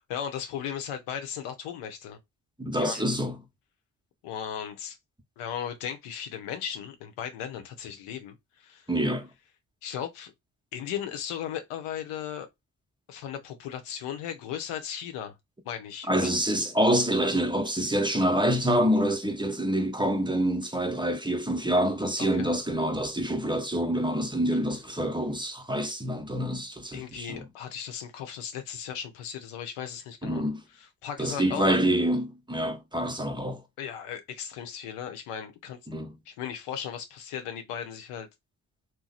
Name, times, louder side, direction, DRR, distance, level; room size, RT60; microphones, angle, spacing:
voice 1, 0.0-2.2 2.7-3.1 4.2-5.0 5.4-8.9 9.8-10.3 10.7-12.5 13.1-15.3 15.6-16.3 22.3-22.5 26.9-30.4 30.7-31.8 33.8-35.8 36.3-38.3, left 9 dB, 80° left, 0.8 m, -36 dB
voice 2, 2.6-3.3 8.9-9.3 16.1-27.4 30.2-30.6 31.2-33.6 35.9-36.1, equal, 10° right, 0.8 m, -26 dB
2.9 x 2.1 x 3.9 m
hypercardioid pair, 40°, 50 cm